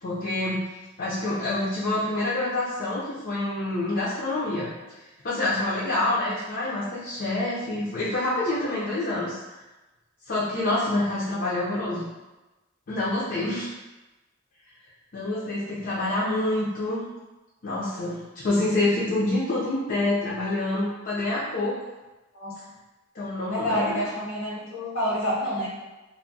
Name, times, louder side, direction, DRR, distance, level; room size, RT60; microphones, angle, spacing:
voice 1, 0.0-0.6 1.0-4.7 5.2-9.6 10.3-12.1 12.9-13.7 15.1-17.0 17.6-21.8 23.1-24.1, left 2 dB, 50° left, -7 dB, 0.6 m, -27 dB
voice 2, 23.5-25.7, equal, 90° left, -6 dB, 1.1 m, -28 dB
2.3 x 2.1 x 3.8 m, 1.1 s
head